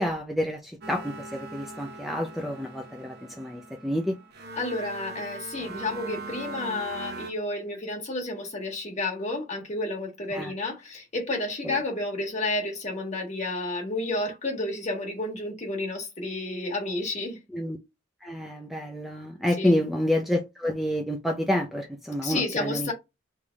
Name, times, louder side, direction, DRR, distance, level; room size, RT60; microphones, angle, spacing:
voice 1, 0.0-4.2 10.3-10.5 11.6-11.8 17.5-17.8 18.2-22.9, left 1 dB, ahead, 0.5 m, -28 dB
sound 1, 0.8-7.3, right 3 dB, 55° right, 0.9 m, -40 dB
voice 2, 4.6-17.4 19.6-19.7 22.2-22.9, left 2 dB, 35° left, 1.5 m, -31 dB
3.4 x 3.4 x 4.0 m
head